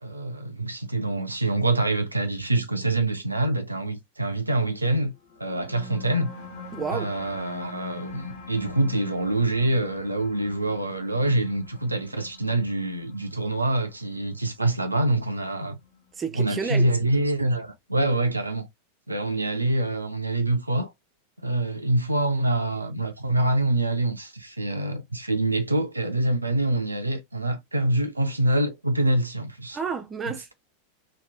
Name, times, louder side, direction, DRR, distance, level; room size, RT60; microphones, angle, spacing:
voice 1, 0.0-5.1 5.4-6.3 6.9-15.8 16.3-18.7 19.1-20.9 21.4-29.8, right 2 dB, 85° right, 0.5 m, -25 dB
sound 1, 5.3-16.3, left 4 dB, 55° left, 1.3 m, -44 dB
voice 2, 6.7-7.1 16.2-16.9 29.7-30.5, right 5 dB, 20° right, 0.6 m, -31 dB
2.9 x 2.3 x 3.4 m
figure-of-eight pair, 90°, 0 cm